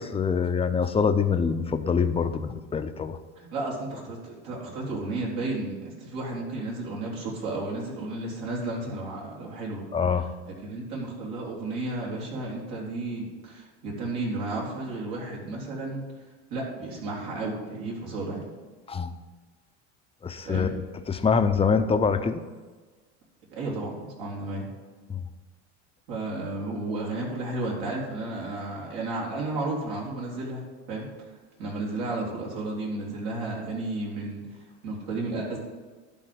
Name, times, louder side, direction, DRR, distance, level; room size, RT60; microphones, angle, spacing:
voice 1, 0.0-3.2 9.9-10.3 18.9-19.1 20.2-20.8 21.1-22.4 25.1-25.2, left 5 dB, 15° left, 8 dB, 0.6 m, -25 dB
voice 2, 3.4-9.8 10.6-16.0 16.5-18.4 20.4-20.7 23.5-24.7 26.1-30.6 30.9-31.1 31.6-34.4 34.8-35.6, right 2 dB, 70° right, -3 dB, 3.6 m, -33 dB
11.5 x 3.9 x 7.8 m, 1.3 s
supercardioid pair, 95°, 35 cm